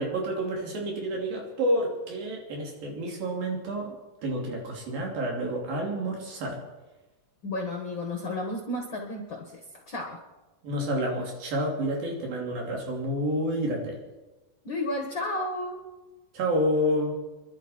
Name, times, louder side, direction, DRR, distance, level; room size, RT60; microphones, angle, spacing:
voice 1, 0.0-4.0 4.2-6.6 10.6-14.0 16.3-17.1, equal, 75° right, -1 dB, 4.7 m, -29 dB
voice 2, 7.4-9.6 9.9-10.2 14.6-15.8, left 1 dB, 50° left, 2 dB, 1.5 m, -32 dB
26.0 x 11.5 x 4.4 m, 1.1 s
omnidirectional pair, 4.1 m